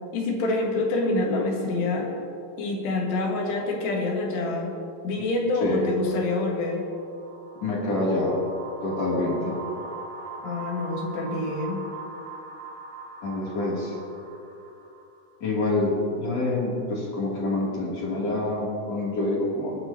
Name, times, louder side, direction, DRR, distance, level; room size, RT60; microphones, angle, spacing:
voice 1, 0.1-2.1 2.6-4.7 5.0-6.8 10.4-11.8, left 2 dB, 80° left, -1 dB, 3.8 m, -26 dB
sound 1, 5.9-15.3, right 3 dB, 50° right, 1.9 m, -41 dB
voice 2, 7.6-8.4 8.8-9.6 13.2-13.9 15.4-19.8, left 2 dB, 40° left, -5 dB, 3.6 m, -26 dB
28.5 x 9.4 x 2.9 m, 2.7 s
omnidirectional pair, 4.8 m